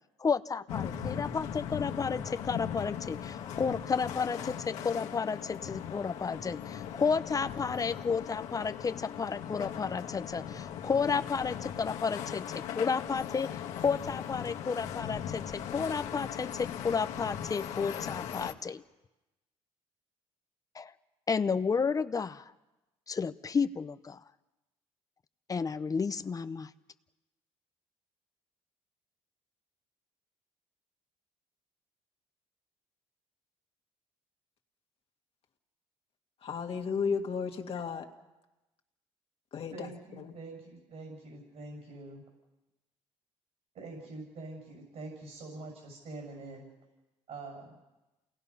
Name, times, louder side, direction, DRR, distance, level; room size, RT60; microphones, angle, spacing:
voice 1, 0.2-18.8 20.7-20.9 21.3-22.5 23.1-24.2 25.5-26.7, left 5 dB, 30° left, 0.7 m, -32 dB
sound 1, 0.7-18.5, left 9 dB, 85° left, 1.6 m, -39 dB
voice 2, 36.4-38.1 39.5-39.9 40.2-40.3, left 5 dB, 55° left, 2.1 m, -33 dB
voice 3, 39.7-42.2 43.7-46.6 47.3-47.8, right 2 dB, 70° right, 6.8 m, -45 dB
28.5 x 19.0 x 5.6 m
cardioid pair, 95°, 12 cm